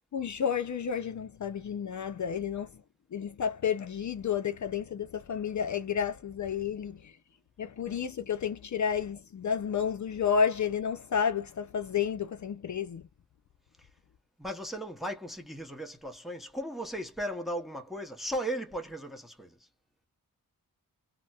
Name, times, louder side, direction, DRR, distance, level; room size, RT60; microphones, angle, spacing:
voice 1, 0.1-2.8 3.1-7.2 7.6-13.1, left 7 dB, 55° left, 0.5 m, -31 dB
voice 2, 14.4-19.7, equal, ahead, 0.7 m, -36 dB
4.0 x 2.0 x 2.3 m
wide cardioid pair, 165°, 36 cm